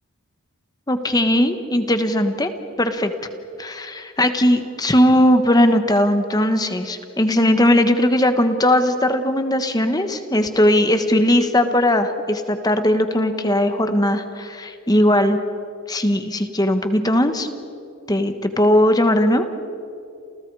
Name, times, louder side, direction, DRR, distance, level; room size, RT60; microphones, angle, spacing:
voice 1, 0.9-2.5 2.8-3.1 3.6-15.4 15.9-17.5 18.1-19.4, left 1 dB, 15° left, 8 dB, 1.4 m, -18 dB
29.0 x 29.0 x 4.9 m, 2.7 s
head